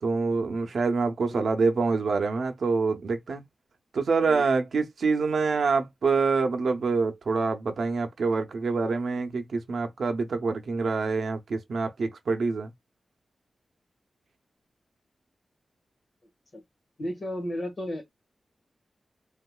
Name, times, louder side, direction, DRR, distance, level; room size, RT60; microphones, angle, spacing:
voice 1, 0.0-3.4 3.9-12.7, right 4 dB, 80° right, 0.7 m, -26 dB
voice 2, 17.0-18.1, equal, 50° left, 1.6 m, -34 dB
3.8 x 2.5 x 2.3 m
wide cardioid pair, 80°, 0 cm